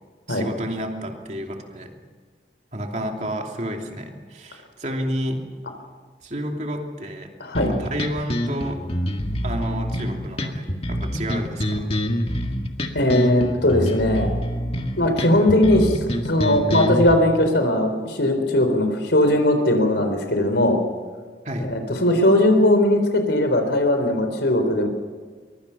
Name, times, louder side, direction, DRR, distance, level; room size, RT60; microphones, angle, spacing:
voice 1, 0.3-1.9 2.7-5.4 6.2-7.3 7.8-8.8 9.4-11.9 21.4-21.7, equal, 40° right, 2 dB, 2.9 m, -30 dB
voice 2, 7.4-7.7 12.9-14.3 15.0-20.8 21.7-24.9, left 1 dB, 75° left, 6 dB, 3.9 m, -19 dB
sound 1, 7.5-17.1, equal, 35° left, 1.8 m, -26 dB
23.5 x 22.5 x 5.8 m, 1.5 s
head